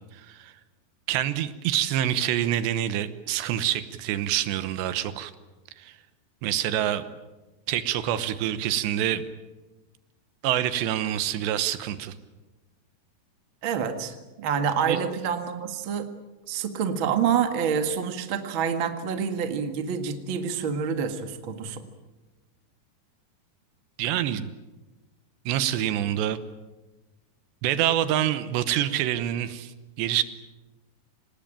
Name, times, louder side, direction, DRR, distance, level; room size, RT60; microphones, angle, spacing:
voice 1, 0.1-0.5 1.1-5.3 5.8-5.9 6.4-7.0 7.7-9.3 10.4-12.1 14.9-15.0 24.0-24.5 25.5-26.4 27.6-29.7 30.0-30.2, right 11 dB, 80° right, 13 dB, 3.3 m, -26 dB
voice 2, 13.6-16.1 16.5-21.8, right 7 dB, 50° right, 7 dB, 1.5 m, -27 dB
26.5 x 19.5 x 9.0 m, 1.1 s
omnidirectional pair, 5.0 m